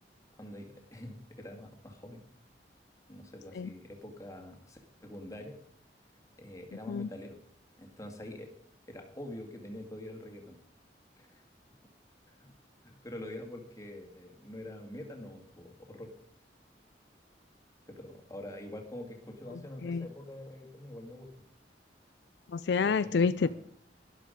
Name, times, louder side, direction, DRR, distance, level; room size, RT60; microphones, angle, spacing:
voice 1, 0.4-2.3 3.1-5.6 6.4-7.4 7.8-8.5 8.9-10.6 11.2-11.4 12.4-12.5 12.8-16.1 17.9-21.3 22.8-23.5, left 1 dB, 20° left, 3 dB, 2.1 m, -45 dB
voice 2, 22.5-23.5, left 5 dB, 70° left, 14 dB, 0.4 m, -28 dB
12.0 x 11.0 x 5.1 m, 0.69 s
head